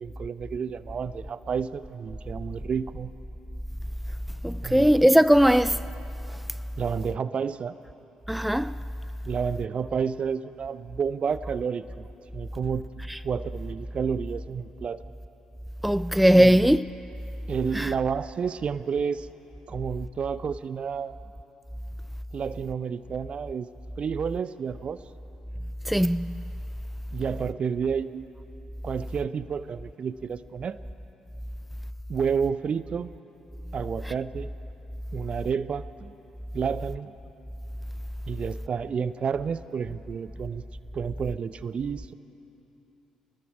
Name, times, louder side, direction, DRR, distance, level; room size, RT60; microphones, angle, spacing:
voice 1, 0.0-3.1 4.6-5.0 6.8-7.7 9.2-11.9 12.3-12.9 13.2-15.0 16.3-16.6 17.5-19.3 19.7-21.2 22.3-23.7 24.0-25.0 27.1-28.3 28.8-30.8 32.1-33.1 33.7-34.5 35.1-36.1 36.5-37.1 38.3-40.6 40.9-42.1, right 6 dB, 45° right, 0.7 m, -30 dB
voice 2, 4.4-5.8 8.3-8.7 13.1-13.2 15.8-16.9 17.7-17.9 25.9-26.4, equal, ahead, 0.4 m, -19 dB
28.5 x 20.0 x 4.8 m
figure-of-eight pair, 45°, 3 cm